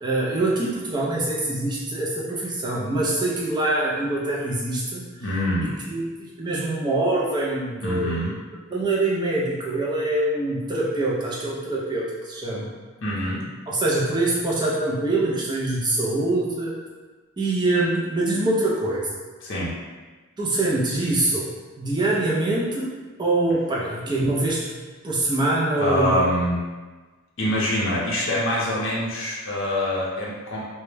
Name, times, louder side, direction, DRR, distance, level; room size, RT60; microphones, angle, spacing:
voice 1, 0.0-5.0 5.6-8.2 8.7-12.7 13.7-16.8 17.4-19.1 20.4-21.5 21.8-22.9 23.2-24.6 25.0-26.2, right 2 dB, 20° right, -5 dB, 0.4 m, -24 dB
voice 2, 5.2-5.7 7.8-8.3 13.0-13.4 19.4-19.7 25.8-26.6 27.4-30.6, left 1 dB, 55° left, -6 dB, 0.5 m, -25 dB
2.2 x 2.0 x 3.1 m, 1.3 s
head